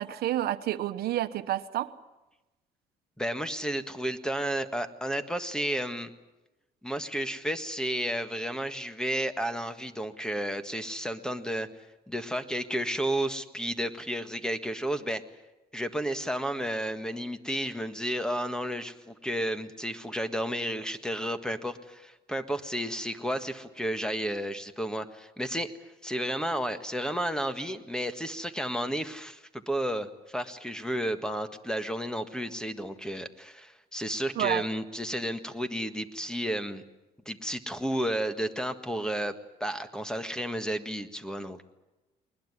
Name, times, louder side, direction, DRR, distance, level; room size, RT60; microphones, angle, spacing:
voice 1, 0.0-1.9 34.4-34.6, right 13 dB, 70° right, 10 dB, 1.1 m, -29 dB
voice 2, 3.2-6.1 6.8-11.7 12.1-15.2 15.7-25.7 26.0-36.8 37.2-39.3 39.6-41.6, equal, 5° left, 10 dB, 1.6 m, -32 dB
21.0 x 20.5 x 9.9 m, 1.0 s
cardioid pair, 110°, 17 cm